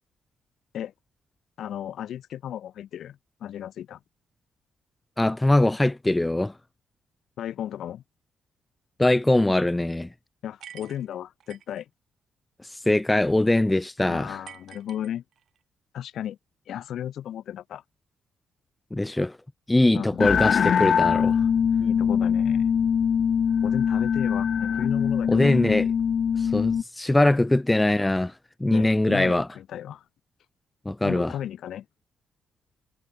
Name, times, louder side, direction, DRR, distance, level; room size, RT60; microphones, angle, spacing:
voice 1, 1.6-4.0 7.4-8.0 10.4-11.9 14.1-15.2 15.9-16.4 16.7-17.8 19.9-20.2 21.8-22.7 23.6-25.5 28.7-30.0 31.0-31.9, left 10 dB, 70° left, 3.5 m, -34 dB
voice 2, 5.2-6.5 9.0-10.1 12.7-14.4 18.9-19.4 19.7-21.4 25.3-25.9 26.4-28.3 28.6-29.5 30.9-31.3, left 1 dB, 10° left, 0.5 m, -22 dB
sound 1, 10.6-11.8 14.5-15.6, right 9 dB, 65° right, 3.3 m, -47 dB
sound 2, 20.2-26.8, left 7 dB, 50° left, 0.6 m, -22 dB
cardioid pair, 90°, 0 cm